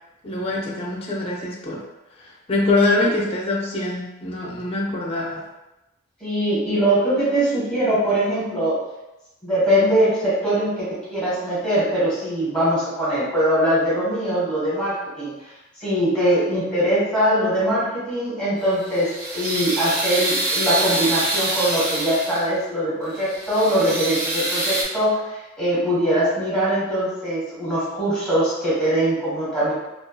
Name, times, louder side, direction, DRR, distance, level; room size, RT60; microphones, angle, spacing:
voice 1, 0.2-1.8 2.2-5.4, left 2 dB, 30° left, -2 dB, 0.4 m, -24 dB
voice 2, 6.2-8.8 9.4-15.3 15.8-29.7, right 1 dB, 5° left, -10 dB, 1.2 m, -22 dB
sound 1, 18.6-22.6 23.1-24.8, right 2 dB, 45° right, 0.5 m, -26 dB
2.5 x 2.4 x 2.2 m, 0.97 s
head